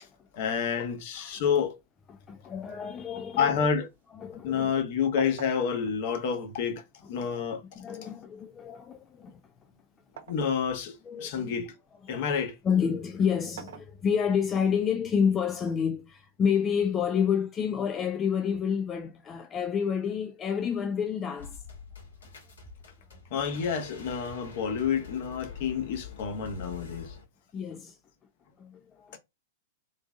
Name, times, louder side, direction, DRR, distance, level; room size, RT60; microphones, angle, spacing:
voice 1, 0.3-1.8 3.4-3.9 4.4-6.8 7.1-7.8 10.3-10.9 11.2-11.7 12.1-12.5 23.3-27.1, left 7 dB, 50° left, 1.3 m, -29 dB
voice 2, 2.1-3.7 4.1-4.7 7.2-7.3 7.7-9.4 10.1-10.2 11.0-11.5 12.0-12.3 12.6-21.6 27.5-28.0 28.6-29.2, left 7 dB, 25° left, 0.5 m, -29 dB
sound 1, 3.5-4.8 5.2-7.1 8.0-10.5 11.0-12.3 13.3-14.5 15.6-16.6, right 8 dB, 65° right, 0.9 m, -49 dB
sound 2, 21.4-27.3, left 5 dB, 75° left, 1.8 m, -45 dB
3.8 x 3.5 x 2.4 m
figure-of-eight pair, 105°, 0 cm